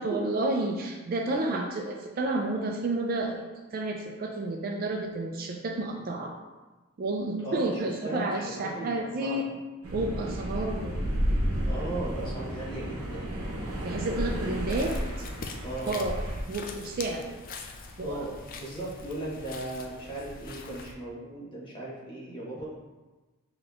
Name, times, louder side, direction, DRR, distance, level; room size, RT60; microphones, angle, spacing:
voice 1, 0.0-1.9 2.2-3.4 3.7-6.3 7.0-9.4 9.9-10.9 13.8-14.9 15.8-16.1 16.5-17.3 18.0-18.2, right 2 dB, 40° right, 2 dB, 0.3 m, -30 dB
voice 2, 1.2-1.6 5.8-6.0 7.4-9.4 10.5-10.7 11.6-13.3 14.4-14.8 15.1-15.2 15.6-16.0 18.0-22.7, right 2 dB, 20° left, -7 dB, 1.1 m, -37 dB
sound 1, 9.8-16.4, equal, 85° right, 0.8 m, -32 dB
sound 2, 14.7-20.9, left 4 dB, 40° left, 0.4 m, -43 dB
5.8 x 2.9 x 2.4 m, 1.2 s
head